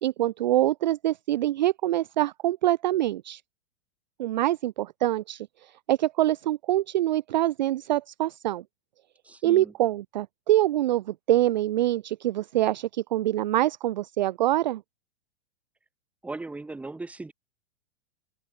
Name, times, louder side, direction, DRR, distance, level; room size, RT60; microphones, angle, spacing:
voice 1, 0.0-3.4 4.2-8.6 9.4-14.8, right 14 dB, 45° right, 0.5 m, -25 dB
voice 2, 9.2-9.7 16.2-17.3, right 3 dB, 5° right, 6.1 m, -38 dB
open air
supercardioid pair, 175°, 33 cm